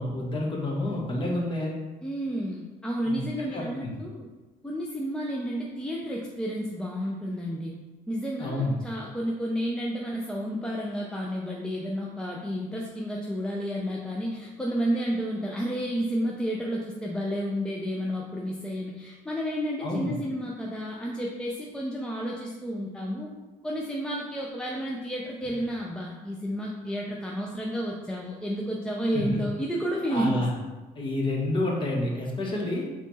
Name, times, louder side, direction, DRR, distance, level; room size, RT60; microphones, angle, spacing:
voice 1, 0.0-1.7 3.1-3.9 8.4-8.7 19.8-20.1 29.1-29.4 30.1-30.5 30.9-32.9, left 1 dB, 30° left, -2 dB, 1.2 m, -29 dB
voice 2, 2.0-4.3 4.6-7.7 8.1-23.3 23.6-30.5, equal, 5° left, -3 dB, 0.5 m, -31 dB
4.2 x 3.0 x 4.1 m, 1.2 s
cardioid pair, 110°, 17 cm